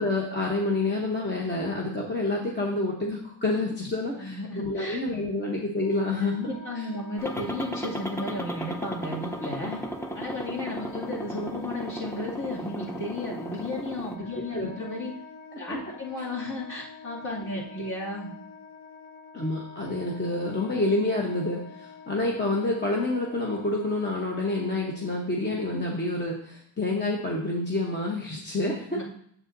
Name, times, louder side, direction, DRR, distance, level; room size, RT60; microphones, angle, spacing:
voice 1, 0.0-6.9 10.8-10.9 14.5-14.7 15.5-15.8 16.2-16.3 19.3-29.0, left 2 dB, 25° left, -1 dB, 0.9 m, -28 dB
voice 2, 4.2-5.0 6.2-9.8 10.1-15.1 15.6-18.3 28.9-29.0, left 1 dB, 45° left, -5 dB, 2.4 m, -34 dB
Wind instrument woodwind instrument, 5.7-25.2, left 3 dB, 65° left, 0.9 m, -47 dB
sound 1, 7.2-14.2, equal, 5° left, 0.4 m, -36 dB
9.4 x 7.5 x 2.6 m, 0.67 s
wide cardioid pair, 160°, 44 cm